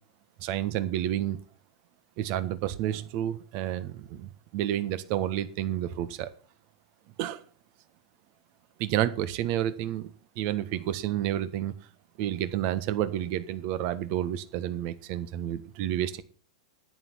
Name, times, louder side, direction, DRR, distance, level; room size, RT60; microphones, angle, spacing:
voice 1, 0.4-1.4 2.2-6.3 7.2-7.4 8.8-11.7 12.2-16.2, right 12 dB, 45° right, 14 dB, 1.4 m, -30 dB
10.5 x 9.9 x 5.8 m, 0.40 s
hypercardioid pair, 100°, 4 cm